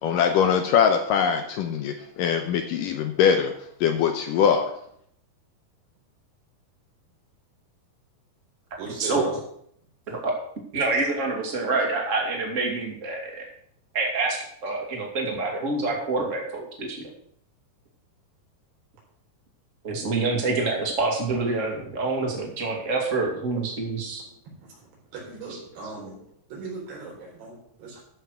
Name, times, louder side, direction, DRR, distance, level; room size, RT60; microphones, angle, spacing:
voice 1, 0.0-3.5 3.8-4.7, left 7 dB, 75° left, 6 dB, 2.1 m, -22 dB
voice 2, 8.8-9.3 24.6-24.7 25.1-26.1 26.5-28.0, right 4 dB, 90° right, -2 dB, 6.2 m, -37 dB
voice 3, 10.7-13.4 13.9-17.1 19.8-24.2 25.5-25.6, right 3 dB, 25° right, 1 dB, 1.9 m, -27 dB
13.5 x 5.8 x 6.4 m, 0.67 s
omnidirectional pair, 4.6 m